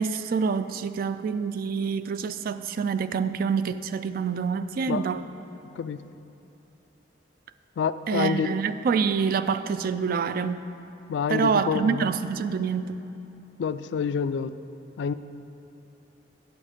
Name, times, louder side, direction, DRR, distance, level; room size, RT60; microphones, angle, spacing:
voice 1, 0.0-5.2 8.1-10.6 11.3-13.0, right 6 dB, 55° right, 12 dB, 0.3 m, -26 dB
voice 2, 7.8-8.6 11.1-12.1 13.6-14.6 15.0-15.1, left 6 dB, 70° left, 14 dB, 0.3 m, -27 dB
8.7 x 8.0 x 5.1 m, 2.8 s
head